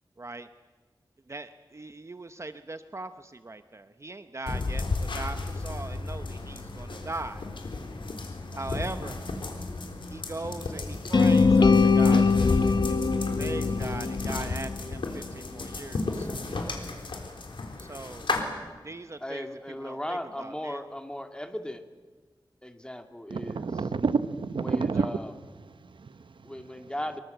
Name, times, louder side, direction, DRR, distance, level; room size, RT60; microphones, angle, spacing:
voice 1, 0.2-0.5 1.3-4.8 5.1-7.4 8.5-9.2 10.1-16.3 17.8-18.3 18.8-19.5 19.8-20.8 25.0-25.1, right 2 dB, 35° right, 10 dB, 0.9 m, -40 dB
sound 1, 4.5-18.4, left 3 dB, 85° left, 3.9 m, -33 dB
sound 2, 11.1-15.2, left 4 dB, 60° left, 0.9 m, -22 dB
voice 2, 19.2-21.8 22.6-23.7 24.6-25.3 26.4-27.2, left 1 dB, 10° left, 6 dB, 2.3 m, -37 dB
voice 3, 23.3-25.2 25.6-26.9, right 4 dB, 80° right, 13 dB, 1.0 m, -30 dB
24.5 x 23.0 x 8.0 m, 1.4 s
wide cardioid pair, 95°, 8 cm